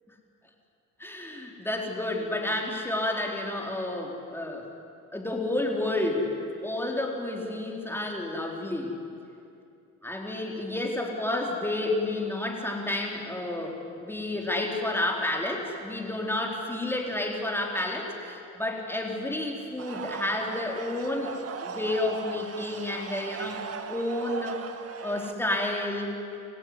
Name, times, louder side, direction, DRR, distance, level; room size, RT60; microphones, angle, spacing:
voice 1, 1.0-4.6 5.1-6.3 6.6-8.9 10.0-23.6 23.9-24.6 25.0-26.1, left 1 dB, 5° left, 0 dB, 4.0 m, -30 dB
sound 1, 19.8-25.3, right 6 dB, 50° right, 1.5 m, -38 dB
28.5 x 15.0 x 9.8 m, 2.6 s
cardioid pair, 90°, 30 cm